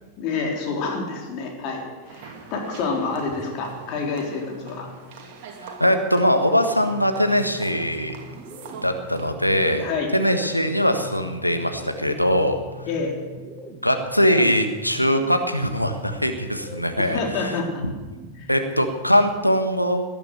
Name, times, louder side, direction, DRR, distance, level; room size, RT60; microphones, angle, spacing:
voice 1, 0.2-4.9 9.8-10.1 12.9-13.1 17.0-17.8 18.4-18.5, left 4 dB, 40° left, 0 dB, 3.9 m, -28 dB
sound 1, 2.1-9.3, right 5 dB, 45° right, 2.5 m, -43 dB
sound 2, 3.2-5.3 6.2-19.2, right 1 dB, 20° right, 6.0 m, -43 dB
voice 2, 5.6-8.1 8.8-9.9 10.1-12.6 13.8-17.5 18.5-20.0, equal, 90° left, 6 dB, 1.4 m, -21 dB
17.5 x 11.0 x 6.8 m, 1.2 s
figure-of-eight pair, 90°, 0 cm